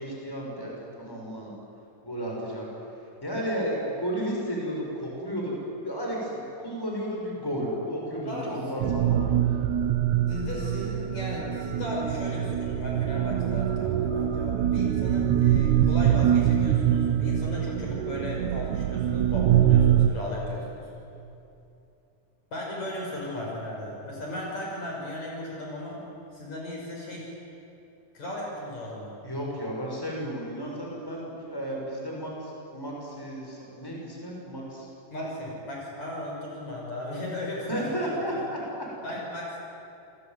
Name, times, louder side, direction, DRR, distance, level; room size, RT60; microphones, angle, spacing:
voice 1, 0.0-1.5 2.0-2.7 3.2-9.3 29.2-34.9 37.6-38.9, equal, 5° left, -2 dB, 6.5 m, -33 dB
voice 2, 8.3-8.6 10.3-20.9 22.5-26.0 26.3-27.3 28.1-29.1 35.1-38.4 39.0-39.6, left 1 dB, 50° left, -2 dB, 6.9 m, -36 dB
sound 1, 8.8-20.1, right 10 dB, 70° right, 2.0 m, -24 dB
28.0 x 21.5 x 9.6 m, 2.7 s
omnidirectional pair, 4.1 m